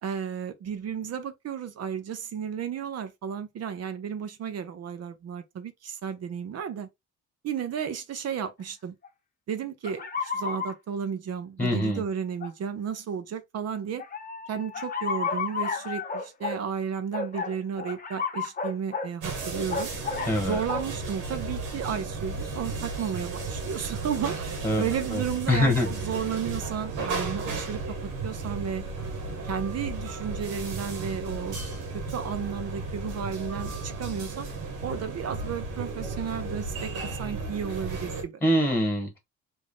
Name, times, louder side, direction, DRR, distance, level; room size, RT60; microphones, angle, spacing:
voice 1, 0.0-6.9 7.4-8.9 9.5-14.0 14.5-19.9 20.4-28.0 28.2-28.8 29.4-31.6 31.9-34.5 34.8-38.4, right 7 dB, 55° right, 0.7 m, -33 dB
sound 1, 9.0-9.1 9.8-10.7 11.6-11.7 12.4-12.5 14.0-16.6 17.1-19.1 19.7-20.3 20.7-20.9, left 5 dB, 30° left, 0.8 m, -32 dB
voice 2, 11.6-12.0 20.3-20.6 24.6-24.9 25.1-25.2 25.5-25.9 38.4-39.2, left 1 dB, 5° left, 1.6 m, -24 dB
sound 2, 19.2-38.2, right 3 dB, 90° right, 1.2 m, -34 dB
3.6 x 2.6 x 3.4 m
cardioid pair, 90°, 30 cm